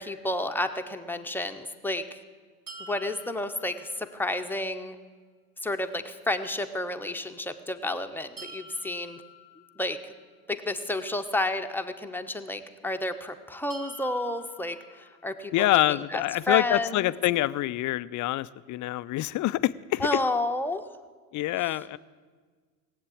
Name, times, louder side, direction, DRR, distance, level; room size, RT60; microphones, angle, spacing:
voice 1, 0.0-2.2 2.8-5.0 5.6-9.2 9.8-10.0 10.5-15.8 16.1-16.2 16.5-17.1 20.0-20.8, left 2 dB, 5° left, 6 dB, 1.0 m, -31 dB
sound 1, 2.7-4.6 8.4-10.4 13.7-15.7, right 1 dB, 40° right, 2.6 m, -48 dB
voice 2, 15.5-20.2 21.3-22.0, left 16 dB, 40° left, 17 dB, 0.5 m, -26 dB
17.0 x 8.3 x 8.5 m, 1.5 s
hypercardioid pair, 80°, 48 cm